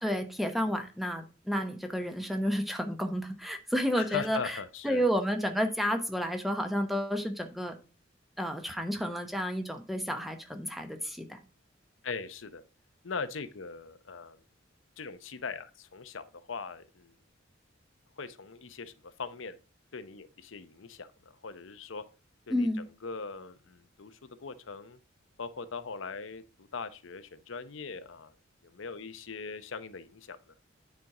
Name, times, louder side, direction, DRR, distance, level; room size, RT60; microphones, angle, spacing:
voice 1, 0.0-4.6 4.8-7.8 8.4-11.4 22.5-22.8, equal, ahead, 5 dB, 1.0 m, -31 dB
voice 2, 4.0-5.0 12.0-12.6 13.0-14.4 15.0-17.1 18.2-19.6 19.9-22.0 22.5-22.7 23.0-25.0 25.4-28.3 28.6-30.4, left 5 dB, 75° left, 12 dB, 0.8 m, -40 dB
9.4 x 4.5 x 4.8 m, 0.33 s
head